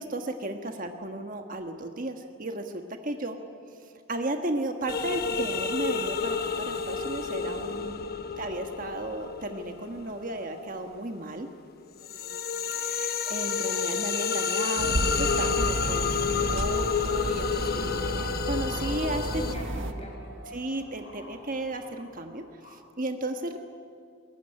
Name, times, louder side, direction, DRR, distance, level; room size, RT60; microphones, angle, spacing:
voice 1, 0.0-3.4 4.1-8.0 8.4-11.5 12.7-17.6 18.5-19.3 20.5-23.6, right 2 dB, 40° right, 5 dB, 1.4 m, -34 dB
sound 1, 4.9-11.3 11.7-19.5, left 6 dB, 45° left, 1.0 m, -30 dB
voice 2, 12.0-12.3 17.6-18.3 19.3-20.3, right 1 dB, 30° left, 1 dB, 6.3 m, -45 dB
sound 2, 13.1-22.9, equal, 60° left, 3.9 m, -46 dB
sound 3, 14.8-19.9, right 1 dB, 60° right, 1.6 m, -31 dB
23.0 x 20.5 x 9.9 m, 2.3 s
head